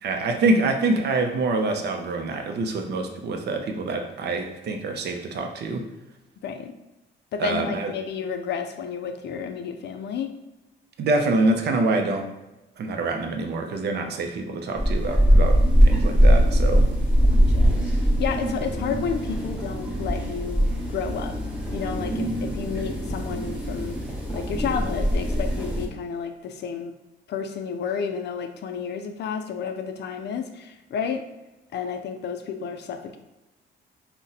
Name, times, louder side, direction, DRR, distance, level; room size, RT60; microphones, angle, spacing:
voice 1, 0.0-5.9 7.4-7.9 11.0-12.3 12.8-16.9, right 2 dB, 60° right, 4 dB, 0.5 m, -25 dB
voice 2, 6.4-6.7 7.3-10.3 17.3-17.7 18.2-21.3 21.7-24.0 24.3-26.9 27.3-31.3 31.7-33.2, left 6 dB, 60° left, 7 dB, 0.4 m, -31 dB
sound 1, 14.7-25.9, equal, 5° right, 0.8 m, -21 dB
2.6 x 2.1 x 3.9 m, 1.0 s
cardioid pair, 90°, 20 cm